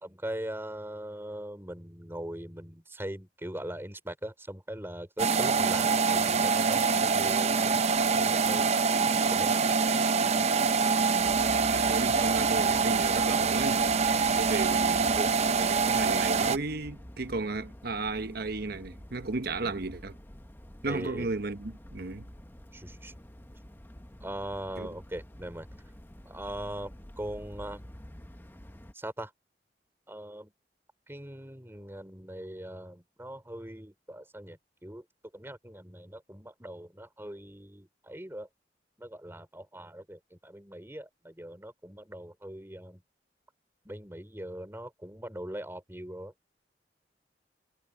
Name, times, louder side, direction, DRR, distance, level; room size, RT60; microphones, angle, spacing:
voice 1, 0.0-7.8 8.1-8.7 9.3-9.5 15.1-15.3 19.6-19.7 20.8-21.4 22.7-23.1 24.2-25.7 26.3-27.8 28.9-29.3 30.1-30.5 31.1-35.1 35.3-38.5 39.0-43.0 43.8-46.3, right 1 dB, 15° right, 4.1 m, -41 dB
sound 1, 5.2-16.6, right 5 dB, 40° right, 0.6 m, -25 dB
sound 2, 11.2-28.9, equal, 10° left, 1.0 m, -47 dB
voice 2, 11.7-13.9 14.4-15.2 15.6-20.1 20.8-22.3 24.8-24.9, right 3 dB, 60° right, 1.0 m, -34 dB
head